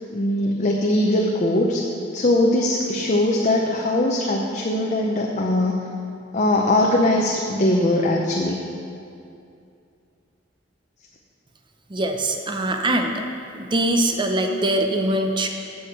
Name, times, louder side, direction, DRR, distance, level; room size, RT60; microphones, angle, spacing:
voice 1, 0.1-1.8 2.1-5.9 6.3-8.6, left 1 dB, 40° left, -1 dB, 0.7 m, -21 dB
voice 2, 11.9-13.1 13.5-15.5, right 1 dB, 25° right, 4 dB, 0.7 m, -22 dB
8.1 x 7.9 x 5.8 m, 2.5 s
head